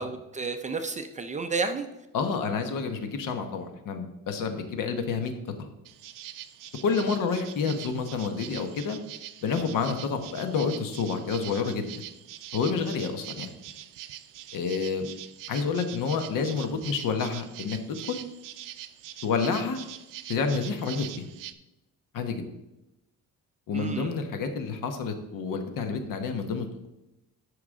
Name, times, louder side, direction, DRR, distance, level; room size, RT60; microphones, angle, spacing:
voice 1, 0.0-1.9 23.7-24.1, right 4 dB, 20° right, 7 dB, 0.4 m, -31 dB
voice 2, 2.1-5.3 5.6-5.7 6.8-9.0 9.4-11.9 12.5-13.5 14.5-15.1 15.5-18.2 19.2-19.8 20.3-21.3 22.1-22.4 23.7-26.9, left 5 dB, 70° left, 7 dB, 1.2 m, -29 dB
sound 1, 5.9-21.5, right 12 dB, 75° right, 0.6 m, -43 dB
13.0 x 4.9 x 3.7 m, 0.94 s
cardioid pair, 175°, 33 cm